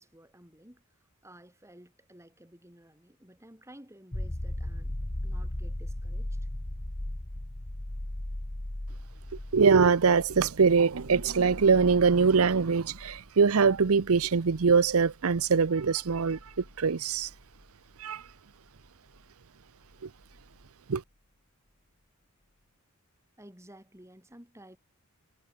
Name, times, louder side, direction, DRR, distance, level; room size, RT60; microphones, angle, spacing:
voice 1, 0.0-4.9 5.2-6.5 23.4-24.8, right 1 dB, 15° right, 6.9 m, -54 dB
sound 1, 4.1-17.6 20.3-20.4, left 1 dB, 30° left, 1.2 m, -38 dB
voice 2, 9.5-16.4 16.8-17.3 18.0-18.2 20.9-21.0, right 5 dB, 75° right, 0.7 m, -23 dB
head